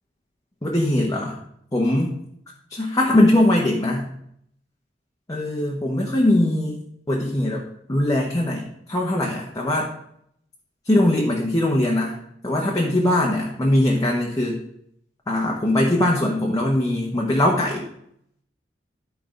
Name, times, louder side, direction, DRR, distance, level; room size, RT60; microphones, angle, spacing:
voice 1, 0.6-1.4 1.7-2.1 2.7-4.1 5.3-6.8 7.1-7.6 7.9-9.9 10.9-12.1 12.4-14.6 15.3-17.9, left 1 dB, 20° left, -2 dB, 1.1 m, -21 dB
11.5 x 4.7 x 5.2 m, 0.72 s
head